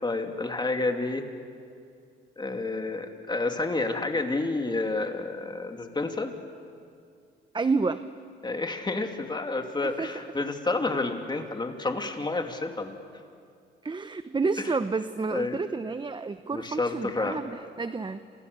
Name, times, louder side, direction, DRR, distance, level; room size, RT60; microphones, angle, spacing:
voice 1, 0.0-1.2 2.4-6.3 8.4-13.0 14.6-14.7 15.3-15.6 16.5-17.4, left 3 dB, 20° left, 4 dB, 2.8 m, -30 dB
voice 2, 7.5-8.0 9.8-10.1 13.8-18.2, right 4 dB, 25° right, 11 dB, 0.8 m, -30 dB
28.5 x 28.5 x 6.9 m, 2.4 s
cardioid pair, 90°, 20 cm